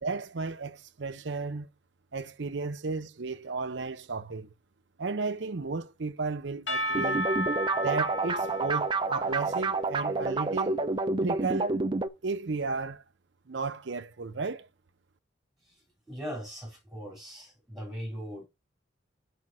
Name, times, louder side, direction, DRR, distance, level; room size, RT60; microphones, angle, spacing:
voice 1, 0.0-1.7 2.1-4.5 5.0-7.3 7.7-10.9 11.2-11.8 12.2-13.0 13.5-14.7, right 4 dB, 70° right, 0.7 m, -34 dB
Percussion / Church bell, 6.7-10.5, equal, 80° left, 0.9 m, -34 dB
sound 1, 6.9-12.1, right 3 dB, 25° right, 0.5 m, -29 dB
voice 2, 15.6-18.4, equal, ahead, 3.5 m, -40 dB
6.2 x 5.0 x 5.4 m
head